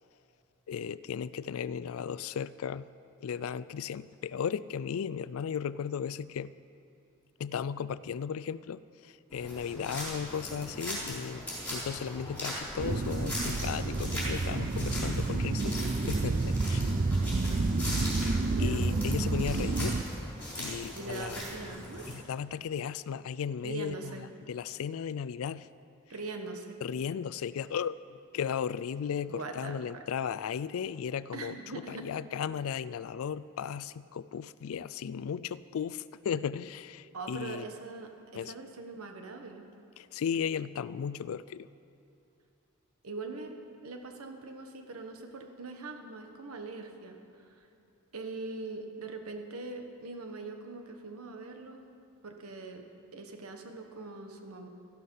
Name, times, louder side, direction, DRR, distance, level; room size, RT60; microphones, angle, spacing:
voice 1, 0.7-2.9 3.2-6.5 7.4-16.9 18.2-20.0 20.6-21.4 22.1-25.7 26.8-37.7 38.3-38.5 40.0-41.7, left 7 dB, 70° left, 17 dB, 0.3 m, -36 dB
sound 1, 9.3-22.2, equal, 5° left, 3.8 m, -40 dB
sound 2, 12.8-20.0, right 3 dB, 40° right, 0.5 m, -29 dB
voice 2, 18.5-18.9 20.9-22.1 23.6-24.2 26.1-26.8 29.3-30.0 31.3-32.1 37.1-39.7 43.0-47.1 47.6-47.7 48.1-51.8 52.2-52.8 53.1-54.7, right 3 dB, 80° right, 5 dB, 1.3 m, -42 dB
13.5 x 12.0 x 5.5 m, 2.8 s
head